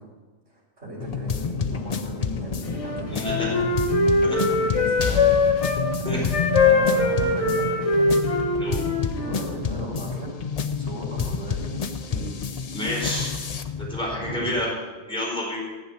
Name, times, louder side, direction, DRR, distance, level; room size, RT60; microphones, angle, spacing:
voice 1, 0.5-3.6 4.5-5.4 6.0-6.4 6.6-8.1 9.2-10.3 10.8-12.2 13.0-13.3 14.1-14.5, equal, 70° right, -6 dB, 5.4 m, -35 dB
sound 1, 1.0-14.7, left 6 dB, 40° left, 0.6 m, -29 dB
Wind instrument woodwind instrument, 2.7-5.8 6.3-9.5, left 3 dB, 25° left, 1.5 m, -22 dB
voice 2, 3.1-3.6 4.2-4.4 6.0-6.2 8.6-8.8 12.1-12.3 12.6-13.3 13.8-14.7 15.1-15.6, equal, 5° left, -5 dB, 4.4 m, -29 dB
12.5 x 7.7 x 8.7 m, 1.3 s
omnidirectional pair, 1.3 m